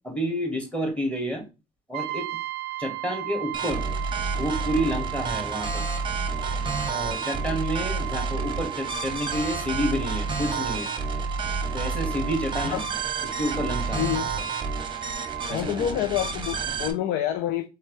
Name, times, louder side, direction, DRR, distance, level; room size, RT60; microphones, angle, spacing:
voice 1, 0.0-1.4 1.9-2.4 2.8-3.8 4.4-5.9 6.9-10.9 11.7-12.8 13.2-14.1 15.5-15.9, equal, 5° left, 1.7 m, -29 dB
Brass instrument, 1.9-15.6, right 16 dB, 80° right, 0.5 m, -36 dB
sound 1, 3.5-16.9, right 4 dB, 30° right, 0.8 m, -30 dB
voice 2, 14.0-14.3 15.5-17.7, left 11 dB, 85° left, 0.5 m, -27 dB
4.6 x 3.4 x 3.1 m
cardioid pair, 110°, 17 cm